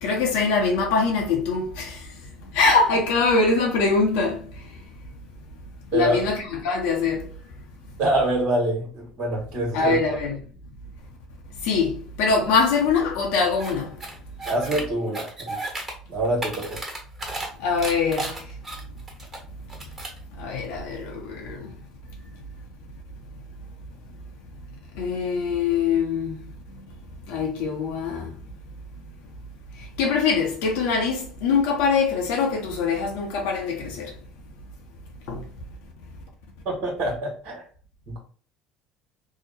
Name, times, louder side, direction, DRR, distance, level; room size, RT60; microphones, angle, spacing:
voice 1, 0.0-2.0 2.5-4.4 5.9-7.3 9.7-10.4 11.6-13.9 17.6-18.4 20.4-21.7 25.0-26.4 27.3-28.3 30.0-34.1 35.3-35.4, left 4 dB, 75° left, 0.7 m, -23 dB
voice 2, 8.0-10.2 14.4-15.6 16.1-16.8 36.6-37.6 38.1-38.2, right 1 dB, 55° right, 1.2 m, -25 dB
sound 1, 13.6-13.7 14.0-14.8 15.1-15.9 16.2-17.5 17.8-19.4 19.7-20.2, right 2 dB, 15° right, 1.4 m, -33 dB
2.8 x 2.0 x 4.0 m
hypercardioid pair, 70°, 2 cm